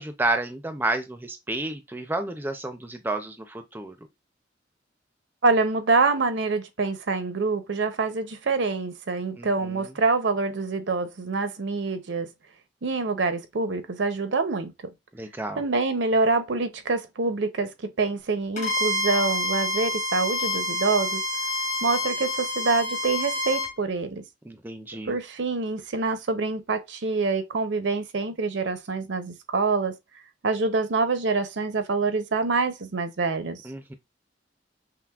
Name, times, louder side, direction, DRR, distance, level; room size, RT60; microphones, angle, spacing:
voice 1, 0.0-4.0 9.4-9.9 15.1-15.6 24.4-25.2 33.6-33.9, right 2 dB, 10° right, 0.4 m, -31 dB
voice 2, 5.4-12.3 12.8-14.7 15.6-21.2 21.8-24.2 25.1-29.9 30.4-33.6, right 3 dB, 75° right, 0.6 m, -26 dB
Bowed string instrument, 18.6-23.7, left 1 dB, 45° left, 1.1 m, -28 dB
5.8 x 2.1 x 2.3 m
head